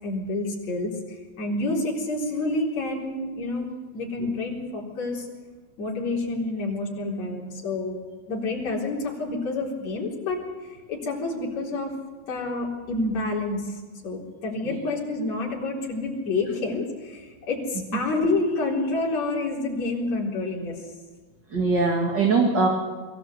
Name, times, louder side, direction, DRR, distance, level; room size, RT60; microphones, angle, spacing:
voice 1, 0.0-3.7 3.9-5.3 5.8-8.0 8.3-10.4 10.9-11.9 12.3-20.8, left 2 dB, 60° left, -3 dB, 5.2 m, -28 dB
voice 2, 21.5-22.7, right 4 dB, 35° right, 1 dB, 2.6 m, -22 dB
22.5 x 15.5 x 8.1 m, 1.4 s
omnidirectional pair, 3.5 m